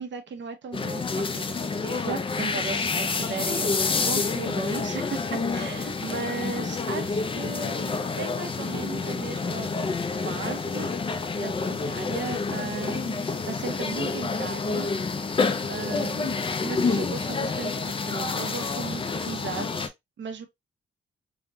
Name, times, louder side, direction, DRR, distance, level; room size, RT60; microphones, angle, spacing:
voice 1, 0.0-1.5 1.8-9.8 10.2-14.9 15.7-16.4 16.6-20.5, right 5 dB, 60° right, 0.8 m, -36 dB
sound 1, 0.7-19.9, left 4 dB, 25° left, 0.4 m, -28 dB
3.8 x 2.1 x 2.6 m
wide cardioid pair, 160°, 21 cm